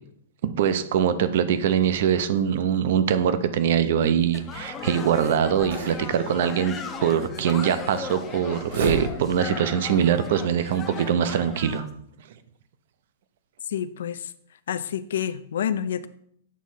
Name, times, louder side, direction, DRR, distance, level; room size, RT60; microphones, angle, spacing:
voice 1, 0.6-6.8 7.0-11.9, right 8 dB, 50° right, 12 dB, 0.6 m, -23 dB
sound 1, 1.9-9.6, right 2 dB, 80° right, 2.7 m, -37 dB
sound 2, 4.3-11.9, left 5 dB, 15° left, 0.6 m, -37 dB
voice 2, 13.7-14.3 14.7-16.1, left 9 dB, 70° left, 15 dB, 0.4 m, -28 dB
8.4 x 3.1 x 5.6 m, 0.68 s
supercardioid pair, 175°, 0 cm